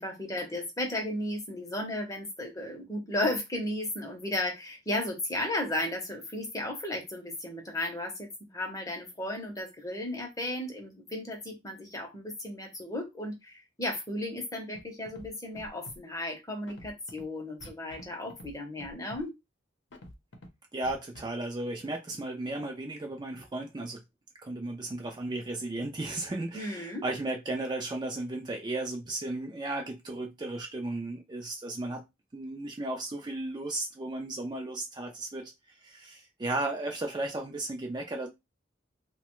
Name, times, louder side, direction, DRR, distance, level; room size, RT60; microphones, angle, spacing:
voice 1, 0.0-19.3 26.5-27.0, left 1 dB, 20° left, 0.7 m, -34 dB
Scratching (performance technique), 14.7-14.8 15.1-15.3 15.5-16.0 16.7-17.2 17.6-18.0 18.3-18.5 18.8-19.2 19.9-20.5 20.8-21.2, left 1 dB, 70° left, 0.7 m, -47 dB
voice 2, 20.7-24.0 24.4-32.0 32.3-35.5 35.8-38.3, right 2 dB, 25° right, 0.4 m, -35 dB
2.9 x 2.2 x 3.0 m
head